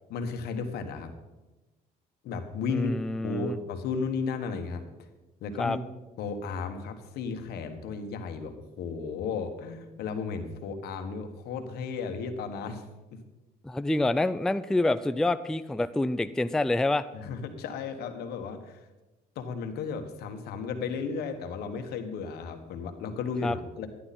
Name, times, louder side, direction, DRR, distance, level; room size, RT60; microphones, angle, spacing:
voice 1, 0.1-1.1 2.2-2.9 3.2-4.8 5.4-5.8 6.2-12.8 13.1-13.2 17.1-18.8 19.3-23.9, left 5 dB, 75° left, 6 dB, 1.5 m, -34 dB
voice 2, 2.7-3.6 5.6-5.8 13.6-17.0 23.4-23.6, left 2 dB, 5° left, 13 dB, 0.3 m, -27 dB
11.5 x 11.0 x 4.3 m, 1.1 s
cardioid pair, 110°, 16 cm